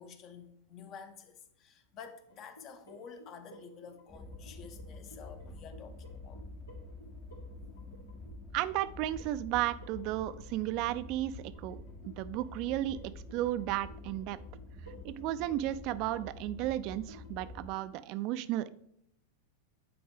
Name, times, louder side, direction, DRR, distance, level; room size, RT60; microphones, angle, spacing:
voice 1, 0.0-6.4 8.1-8.4, left 6 dB, 40° left, 8 dB, 1.0 m, -50 dB
sound 1, 2.3-17.8, right 1 dB, 90° left, 2.4 m, -57 dB
sound 2, 4.1-17.7, left 2 dB, 15° left, 0.8 m, -48 dB
voice 2, 8.5-14.4 15.0-18.7, right 14 dB, 50° right, 14 dB, 0.5 m, -34 dB
9.6 x 4.3 x 3.5 m, 0.73 s
hypercardioid pair, 95°, 0 cm